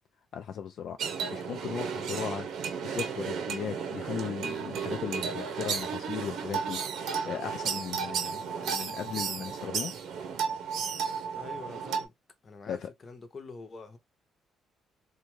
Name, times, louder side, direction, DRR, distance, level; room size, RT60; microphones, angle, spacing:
voice 1, 0.3-2.5 2.8-9.9 12.7-12.9, left 8 dB, 60° left, 0.3 m, -37 dB
sound 1, 1.0-12.1, right 6 dB, 70° right, 0.7 m, -33 dB
voice 2, 11.4-12.1 12.4-14.0, left 4 dB, 25° left, 0.7 m, -45 dB
2.6 x 2.3 x 3.0 m
cardioid pair, 155°, 0 cm